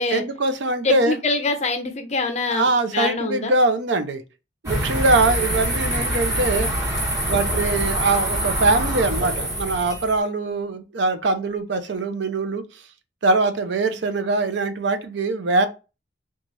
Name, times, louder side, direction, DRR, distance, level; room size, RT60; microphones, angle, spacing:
voice 1, 0.1-1.2 2.5-4.2 4.6-6.7 7.3-12.6 13.2-15.7, right 3 dB, 70° right, 0.5 m, -22 dB
voice 2, 0.8-3.5, left 3 dB, 35° left, 0.6 m, -24 dB
sound 1, 4.6-10.2, right 1 dB, 15° right, 1.1 m, -25 dB
3.1 x 2.3 x 3.9 m
head